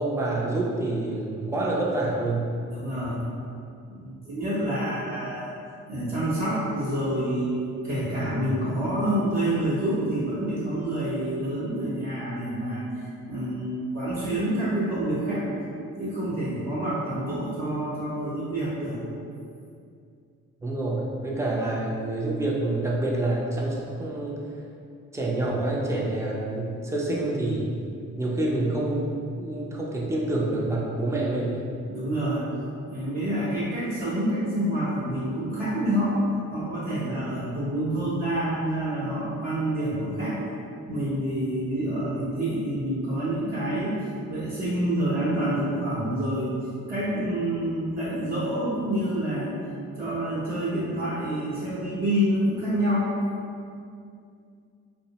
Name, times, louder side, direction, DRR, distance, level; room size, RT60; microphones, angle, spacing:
voice 1, 0.0-2.5 20.6-24.4 25.1-27.7 28.2-31.6, right 2 dB, 10° right, -3 dB, 0.4 m, -27 dB
voice 2, 2.7-3.3 3.9-5.5 5.9-7.6 7.8-15.4 16.0-19.0 31.9-32.5 32.9-36.2 36.5-40.4 40.9-46.6 46.9-49.5 50.0-53.1, right 1 dB, 55° right, -11 dB, 0.8 m, -27 dB
2.7 x 2.0 x 2.8 m, 2.4 s
cardioid pair, 90°, 30 cm